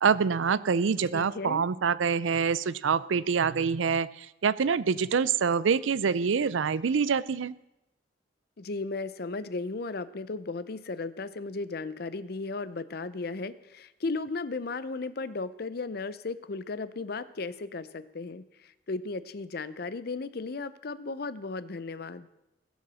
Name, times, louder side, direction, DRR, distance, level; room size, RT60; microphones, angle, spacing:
voice 1, 0.0-7.5, right 6 dB, 90° right, 18 dB, 0.5 m, -26 dB
voice 2, 1.1-1.6 8.6-22.3, left 3 dB, 55° left, 15 dB, 0.6 m, -35 dB
16.5 x 7.2 x 6.2 m, 0.91 s
head